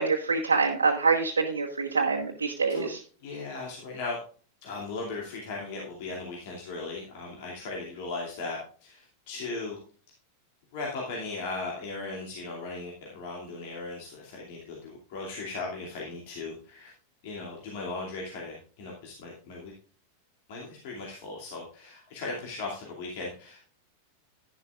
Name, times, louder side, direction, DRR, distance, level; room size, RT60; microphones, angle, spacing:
voice 1, 0.0-3.0, right 4 dB, 70° right, 0 dB, 1.2 m, -25 dB
voice 2, 3.2-4.2 4.6-9.8 10.7-16.9 17.2-19.7 20.5-23.6, left 3 dB, 50° left, -2 dB, 2.5 m, -37 dB
11.0 x 11.0 x 2.4 m, 0.41 s
figure-of-eight pair, 90°, 0 cm